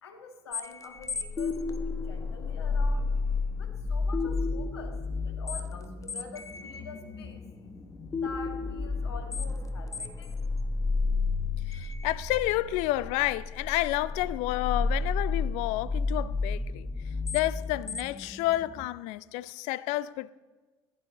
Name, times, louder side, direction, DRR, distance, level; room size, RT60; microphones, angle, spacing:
voice 1, 0.0-5.0 5.2-7.4 8.1-10.3, left 5 dB, 85° left, 1.5 m, -46 dB
sound 1, 0.5-18.9, left 4 dB, 25° left, 1.2 m, -32 dB
voice 2, 11.7-16.9 17.3-20.3, left 16 dB, 60° left, 0.5 m, -30 dB
16.0 x 11.5 x 3.9 m
hypercardioid pair, 70°, 13 cm